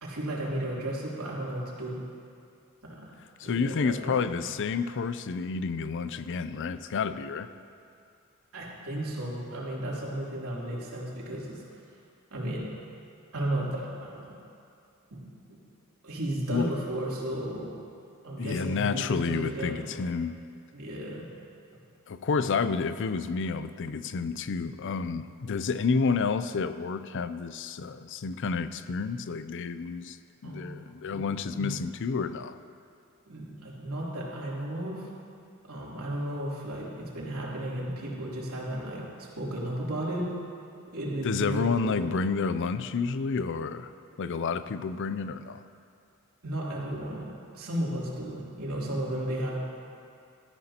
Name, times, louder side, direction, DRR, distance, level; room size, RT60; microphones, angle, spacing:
voice 1, 0.0-2.0 2.8-3.1 3.4-4.4 8.5-11.6 12.3-12.7 13.3-14.3 15.1-15.2 16.0-17.8 18.2-19.8 20.7-21.2 30.4-30.6 31.1-31.2 31.5-31.7 33.3-35.1 35.7-40.2 40.9-42.1 46.4-49.6, right 1 dB, 85° right, -6 dB, 3.1 m, -34 dB
voice 2, 3.4-7.5 16.5-16.7 18.4-20.4 22.1-30.2 30.4-32.6 41.2-43.9 44.2-45.6, left 5 dB, 60° left, 12 dB, 0.5 m, -30 dB
18.0 x 13.5 x 2.9 m, 2.4 s
head